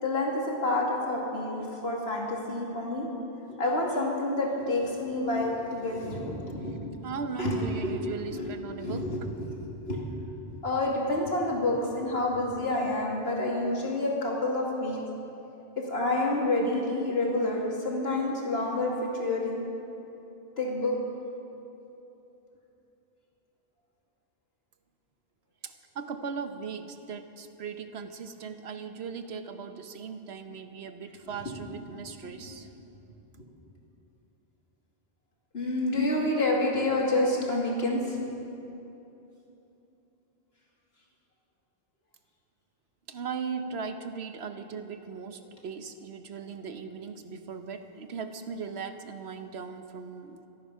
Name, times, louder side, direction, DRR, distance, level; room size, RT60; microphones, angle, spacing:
voice 1, 0.0-3.1 3.6-6.9 7.4-7.9 8.3-10.0 10.6-15.0 15.8-19.5 20.6-21.0 32.2-32.3 35.5-38.2, left 2 dB, 80° left, -3 dB, 2.8 m, -28 dB
voice 2, 7.0-9.1 25.6-32.7 43.1-50.5, right 5 dB, 90° right, 8 dB, 1.2 m, -38 dB
25.5 x 9.4 x 5.6 m, 3.0 s
omnidirectional pair, 1.0 m